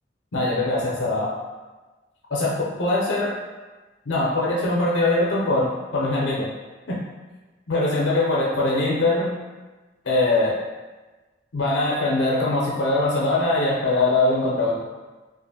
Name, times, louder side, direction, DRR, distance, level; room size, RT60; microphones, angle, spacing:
voice 1, 0.3-1.3 2.3-3.4 4.1-6.5 6.9-7.0 7.7-9.3 10.0-10.6 11.5-14.8, left 2 dB, 80° left, -5 dB, 0.5 m, -22 dB
2.5 x 2.4 x 2.7 m, 1.2 s
head